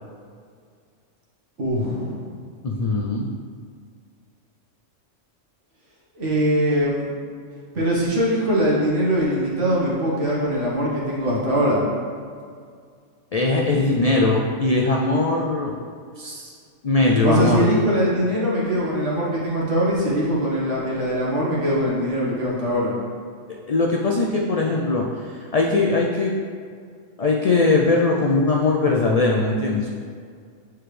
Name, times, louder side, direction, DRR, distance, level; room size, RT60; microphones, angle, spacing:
voice 1, 1.6-2.3 6.2-7.1 7.7-11.9 17.2-23.0, equal, 70° right, -5 dB, 1.8 m, -22 dB
voice 2, 2.6-3.3 13.3-15.7 16.2-16.5 16.8-17.7 23.7-26.3 27.2-29.9, left 3 dB, 75° left, -1 dB, 0.3 m, -20 dB
7.8 x 4.5 x 3.3 m, 2.2 s
omnidirectional pair, 1.3 m